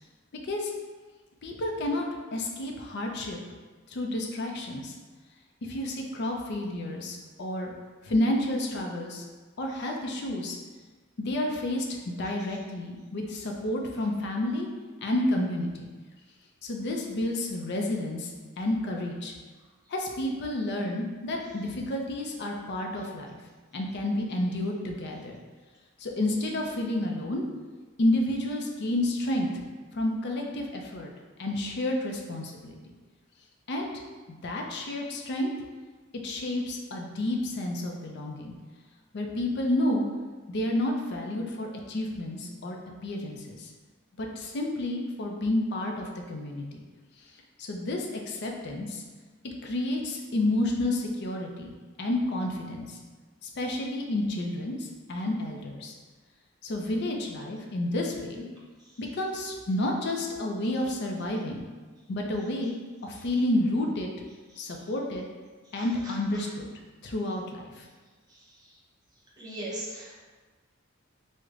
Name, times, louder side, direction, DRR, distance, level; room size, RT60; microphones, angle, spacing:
voice 1, 1.4-2.0 2.3-3.4 3.9-4.9 5.6-7.7 8.0-9.2 9.6-10.6 11.2-14.7 15.0-15.9 16.6-18.3 18.6-19.3 19.9-23.4 23.7-25.4 26.0-27.4 28.0-29.5 29.9-31.1 31.4-32.7 33.7-33.9 34.3-35.5 36.2-38.5 39.1-40.1 40.5-42.8 43.0-43.7 44.2-46.8 47.6-49.0 49.4-53.0 53.4-55.9 56.6-58.4 59.0-61.6 62.1-62.7 63.0-64.1 64.6-65.2 65.7-66.7 67.0-67.9, left 1 dB, 55° left, 1 dB, 0.5 m, -30 dB
voice 2, 69.4-70.1, right 1 dB, 20° right, -8 dB, 0.9 m, -37 dB
4.6 x 2.1 x 2.4 m, 1.4 s
head